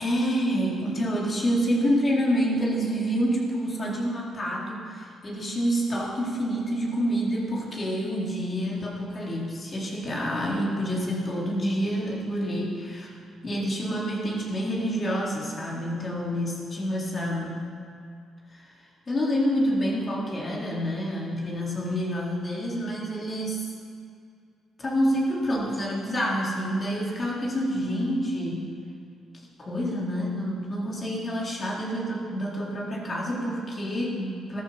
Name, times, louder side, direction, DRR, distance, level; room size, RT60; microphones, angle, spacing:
voice 1, 0.0-13.1 13.4-17.7 18.5-18.6 19.1-23.6 24.8-28.7 29.3-34.6, equal, 35° left, -3 dB, 4.2 m, -28 dB
15.0 x 13.5 x 5.9 m, 2.4 s
cardioid pair, 85°, 0 cm